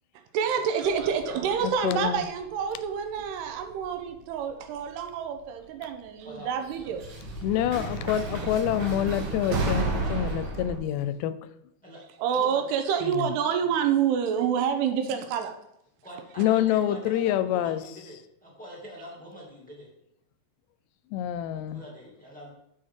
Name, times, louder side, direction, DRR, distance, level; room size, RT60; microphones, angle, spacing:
voice 1, 0.3-7.0 12.2-15.5, right 7 dB, 80° right, 2.8 m, -27 dB
sound 1, 0.8-2.9 3.1-3.8 4.9-5.0 6.7-10.8, right 3 dB, 60° right, 2.6 m, -32 dB
voice 2, 0.9-1.8 6.2-6.9 11.8-12.0 12.3-12.6 16.0-19.9 21.7-22.5, equal, 10° left, 0.4 m, -44 dB
voice 3, 1.8-2.2 7.4-11.4 13.1-13.3 16.4-17.8 21.1-21.8, left 11 dB, 90° left, 2.7 m, -26 dB
9.7 x 7.0 x 3.7 m
omnidirectional pair, 4.8 m